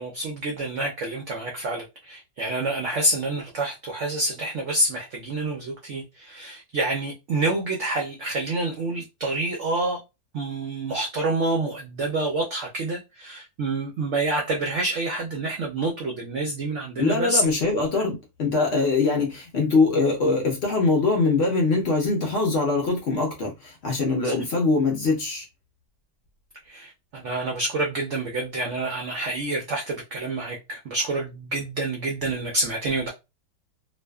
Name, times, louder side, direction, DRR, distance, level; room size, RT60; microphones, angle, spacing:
voice 1, 0.0-10.0 10.3-17.4 24.2-24.3 26.7-33.1, right 2 dB, 70° right, 0.7 m, -28 dB
voice 2, 17.0-25.5, left 3 dB, 70° left, 0.6 m, -23 dB
2.5 x 2.4 x 2.2 m
omnidirectional pair, 1.8 m